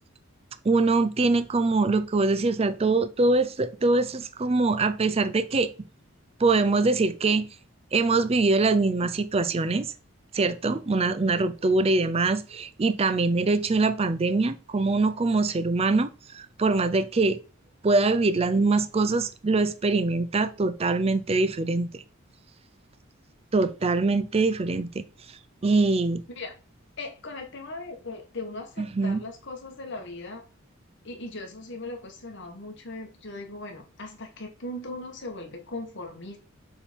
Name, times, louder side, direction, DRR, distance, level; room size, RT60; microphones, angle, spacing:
voice 1, 0.6-5.7 6.4-7.5 7.9-9.9 10.3-17.4 17.8-22.0 23.5-26.2 28.8-29.2, right 3 dB, 30° right, 0.5 m, -23 dB
voice 2, 27.0-30.4 31.0-36.4, left 2 dB, 55° left, 1.6 m, -38 dB
6.8 x 3.7 x 4.5 m
head